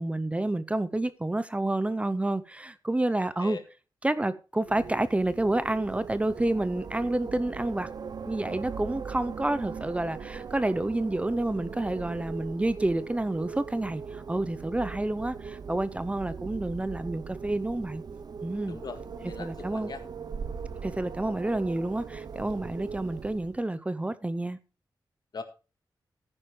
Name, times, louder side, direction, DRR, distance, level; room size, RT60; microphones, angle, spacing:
voice 1, 0.0-3.6 4.0-7.9 8.2-18.0 18.4-18.8 19.4-19.9 20.8-24.6, right 2 dB, 15° right, 0.7 m, -29 dB
voice 2, 3.2-3.6 18.6-20.0 25.3-25.4, left 4 dB, 60° left, 1.9 m, -41 dB
Wind, 4.6-23.6, right 5 dB, 60° right, 0.7 m, -40 dB
14.5 x 9.9 x 3.2 m
wide cardioid pair, 100°, 8 cm